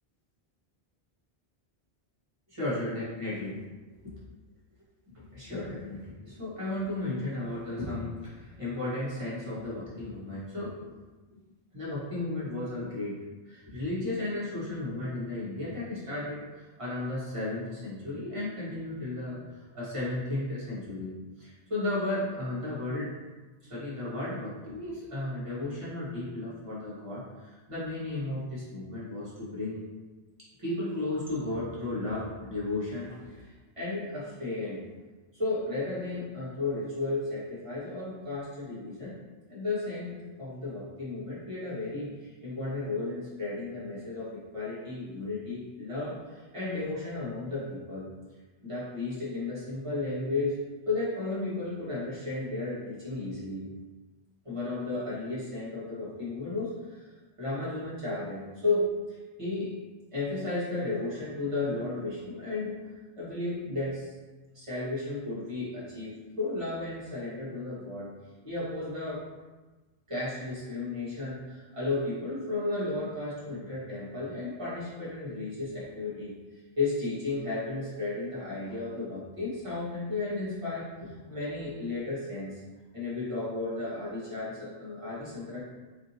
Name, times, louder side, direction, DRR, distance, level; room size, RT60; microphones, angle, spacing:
voice 1, 2.5-3.5 5.1-6.0 6.4-11.0 11.3-11.4 11.7-13.2 13.5-23.1 23.7-29.8 30.6-33.5 33.8-34.8 35.3-39.1 39.5-48.1 48.6-53.7 54.4-57.1 57.4-58.9 59.4-59.7 60.1-62.8 63.2-64.1 64.5-68.1 68.4-69.2 70.1-76.4 76.8-82.6 82.9-85.6, left 2 dB, 30° right, -9 dB, 1.5 m, -34 dB
4.9 x 2.7 x 2.8 m, 1.2 s
omnidirectional pair, 1.0 m